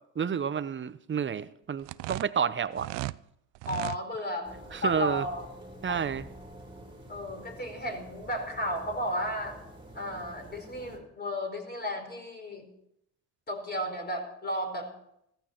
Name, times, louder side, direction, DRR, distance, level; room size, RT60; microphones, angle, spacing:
voice 1, 0.2-2.9 4.7-5.2 5.8-6.3, right 7 dB, 30° right, 15 dB, 0.8 m, -30 dB
sound 1, 1.8-3.2 3.5-4.0, right 21 dB, 75° right, 0.5 m, -36 dB
voice 2, 3.7-5.4 5.9-6.1 7.1-9.6 9.9-12.7 13.5-14.9, equal, 25° left, 3 dB, 4.5 m, -34 dB
sound 2, 4.4-11.0, right 1 dB, 10° right, 3.4 m, -48 dB
15.0 x 14.5 x 4.5 m, 0.76 s
supercardioid pair, 75°, 41 cm